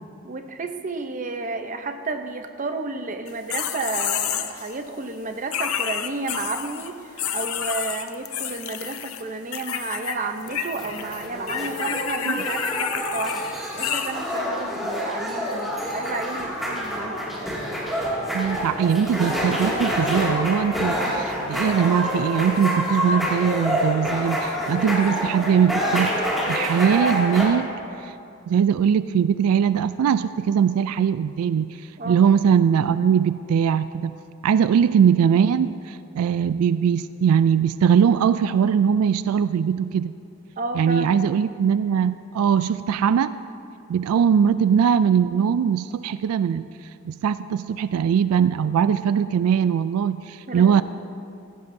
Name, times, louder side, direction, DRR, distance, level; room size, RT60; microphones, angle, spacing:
voice 1, 0.2-17.4 32.0-32.2 40.6-41.2 50.5-50.8, right 3 dB, 35° right, 6 dB, 0.7 m, -32 dB
sound 1, 3.3-4.7 5.5-6.9 7.2-9.2 9.5-10.2 10.4-14.3, left 8 dB, 80° left, 0.7 m, -29 dB
sound 2, 10.5-27.5, equal, ahead, 2.3 m, -27 dB
voice 2, 18.3-26.2 26.5-27.7 28.0-28.1 28.5-31.7 32.1-34.1 34.4-40.1 40.7-43.3 43.9-46.6 47.1-50.8, right 7 dB, 85° right, 14 dB, 0.3 m, -21 dB
17.0 x 15.5 x 2.7 m, 2.6 s
head